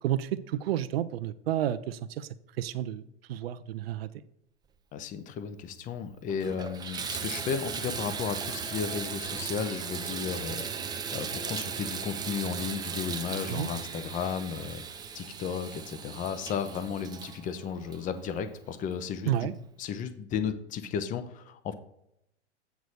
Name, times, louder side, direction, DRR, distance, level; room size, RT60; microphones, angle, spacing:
voice 1, 0.0-2.3 2.6-3.0 3.3-4.1 13.5-13.7 19.2-19.5, right 11 dB, 55° right, 0.7 m, -30 dB
voice 2, 4.9-19.5 19.8-21.7, left 7 dB, 25° left, 0.7 m, -34 dB
Water tap faucet / Bathtub (filling or washing), 5.7-5.8 6.3-18.7 19.4-19.5 20.0-20.1, right 6 dB, 10° right, 0.6 m, -37 dB
8.1 x 4.0 x 6.5 m
hypercardioid pair, 110°, 35 cm